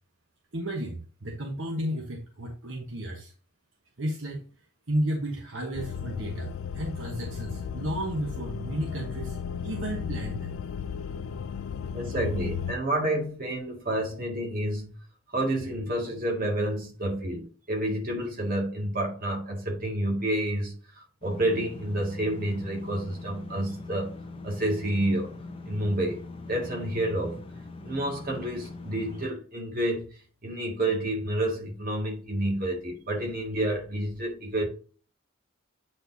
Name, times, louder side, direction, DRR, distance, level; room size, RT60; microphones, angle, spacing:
voice 1, 0.5-3.3 4.0-4.4 4.9-9.4 9.6-10.6, right 1 dB, 65° right, 1.2 m, -33 dB
sound 1, 5.7-12.7, left 7 dB, 80° left, 0.4 m, -35 dB
voice 2, 11.9-14.9 15.3-24.1 24.4-25.3 25.7-26.2 26.5-27.4 27.8-30.1 30.4-34.7, right 1 dB, 45° right, 2.2 m, -29 dB
sound 2, 21.2-29.3, left 3 dB, 25° left, 0.7 m, -42 dB
8.7 x 4.3 x 2.7 m
head